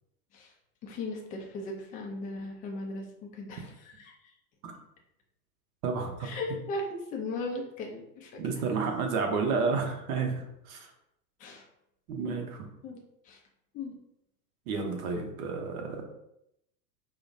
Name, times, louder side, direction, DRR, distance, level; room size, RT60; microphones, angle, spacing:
voice 1, 0.8-4.1 6.2-8.4 10.8-10.9 11.4-11.6 12.8-13.4 13.7-13.9, left 2 dB, 20° left, 1 dB, 0.4 m, -37 dB
voice 2, 5.8-6.3 8.4-10.9 12.1-12.7 14.7-16.1, right 4 dB, 55° right, 3 dB, 0.9 m, -31 dB
4.7 x 2.1 x 2.6 m, 0.80 s
hypercardioid pair, 100°, 50 cm